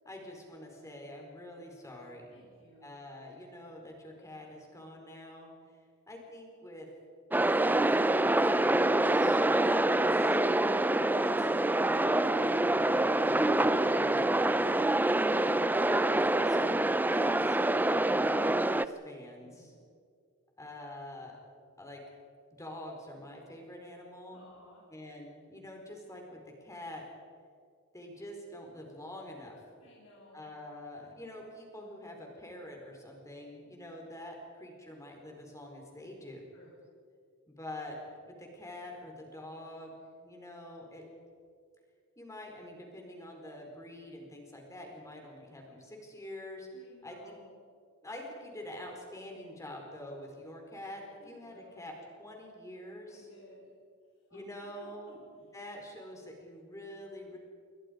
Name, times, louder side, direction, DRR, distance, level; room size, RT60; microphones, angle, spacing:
voice 1, 0.0-2.3 2.8-5.5 6.1-6.9 7.8-10.3 11.2-11.5 11.8-14.5 15.2-16.2 16.4-19.7 20.6-21.3 21.8-22.0 22.6-24.5 24.9-27.0 27.9-29.6 30.3-36.4 37.5-41.0 42.2-46.7 47.0-47.4 48.0-53.3 54.3-55.2 55.5-57.4, left 1 dB, 15° left, 1 dB, 4.6 m, -46 dB
voice 2, 2.3-3.0 19.4-19.8 24.3-24.8 29.8-30.5 36.5-36.7 46.7-47.6 51.2-51.9 53.1-53.7 54.3-54.4 54.8-55.1, left 2 dB, 65° left, -4 dB, 5.0 m, -58 dB
sound 1, 7.3-18.8, right 1 dB, 10° right, 0.5 m, -26 dB
28.5 x 23.0 x 5.3 m, 2.2 s
head